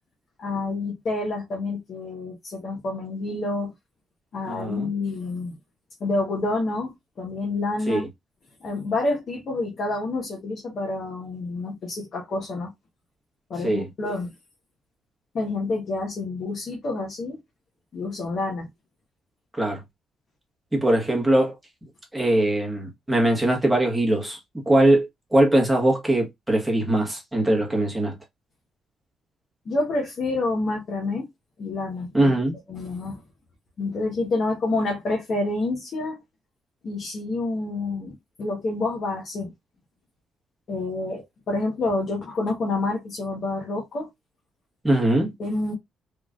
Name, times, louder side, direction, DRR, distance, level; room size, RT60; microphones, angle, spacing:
voice 1, 0.4-3.7 4.3-5.5 6.0-8.0 8.6-12.7 13.5-14.3 15.3-17.4 17.9-18.7 29.6-31.3 31.6-32.3 32.7-33.2 33.8-36.2 36.8-39.5 40.7-44.1 45.4-45.7, left 2 dB, 55° left, 1.4 m, -28 dB
voice 2, 4.5-4.9 7.9-8.0 13.6-13.9 19.6-19.8 20.7-21.5 22.1-24.4 24.6-28.1 32.1-32.5 44.8-45.3, right 1 dB, 5° right, 1.5 m, -21 dB
3.6 x 3.0 x 2.6 m
cardioid pair, 90°, 0 cm